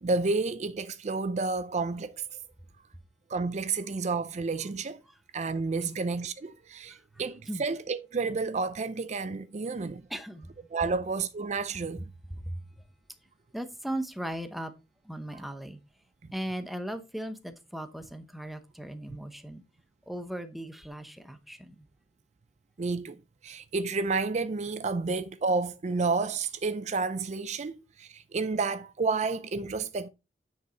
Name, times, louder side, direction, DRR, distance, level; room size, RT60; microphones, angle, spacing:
voice 1, 0.0-2.2 3.3-5.0 5.3-10.0 10.7-12.1 16.2-16.3 22.8-23.2 23.4-30.1, right 4 dB, 40° right, 0.5 m, -30 dB
voice 2, 10.1-10.5 12.3-12.6 13.5-14.7 15.0-15.8 16.3-19.6 20.1-21.9, right 1 dB, ahead, 0.9 m, -37 dB
9.6 x 5.3 x 3.9 m
head